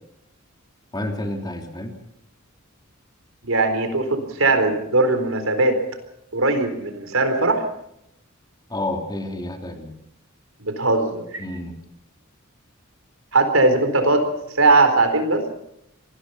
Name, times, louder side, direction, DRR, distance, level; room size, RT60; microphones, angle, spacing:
voice 1, 0.9-2.0 8.7-9.9 11.4-11.8, left 1 dB, 20° left, 3 dB, 3.2 m, -29 dB
voice 2, 3.4-5.8 6.3-7.6 10.6-11.4 13.3-14.2 14.6-15.4, right 2 dB, 80° right, 7 dB, 4.2 m, -19 dB
26.0 x 20.0 x 5.8 m, 0.76 s
head